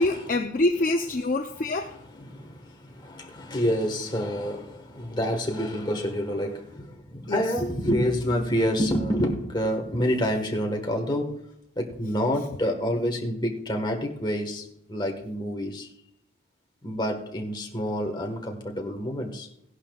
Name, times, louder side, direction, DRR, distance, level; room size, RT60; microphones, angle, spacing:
voice 1, 0.0-2.0 7.3-7.4, left 2 dB, 40° left, 4 dB, 0.5 m, -25 dB
voice 2, 1.9-11.4 11.7-15.9 16.8-19.5, equal, 20° left, 2 dB, 1.4 m, -28 dB
16.5 x 11.0 x 2.4 m, 0.79 s
head